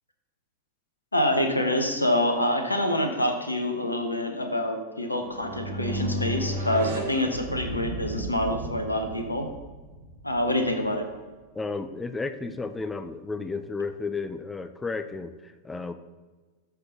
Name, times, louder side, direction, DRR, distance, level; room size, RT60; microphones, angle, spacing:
voice 1, 1.1-9.5 10.2-11.1, left 1 dB, 85° left, 5 dB, 1.0 m, -26 dB
sound 1, 5.1-8.1, equal, 55° right, 1.6 m, -33 dB
Thunder, 5.2-11.6 12.6-12.8, right 2 dB, 90° right, 1.3 m, -39 dB
voice 2, 11.5-15.9, left 4 dB, 10° left, 10 dB, 0.5 m, -33 dB
13.0 x 5.9 x 3.8 m, 1.3 s
figure-of-eight pair, 90°, 0 cm